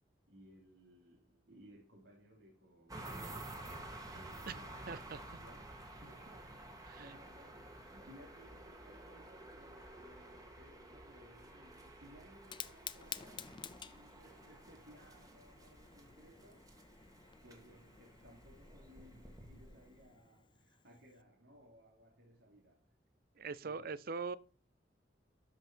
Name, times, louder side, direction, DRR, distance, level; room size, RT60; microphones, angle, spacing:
voice 1, 0.3-5.0 5.3-6.7 7.0-16.7 17.4-22.9 23.6-23.9, equal, 90° right, 3.2 m, -61 dB
sound 1, 2.9-20.1, right 1 dB, 20° right, 1.8 m, -52 dB
voice 2, 4.9-5.2 6.9-7.2 23.4-24.4, right 5 dB, 55° right, 0.5 m, -42 dB
Fire, 12.3-21.2, left 8 dB, 25° left, 0.5 m, -52 dB
13.0 x 5.5 x 4.5 m
head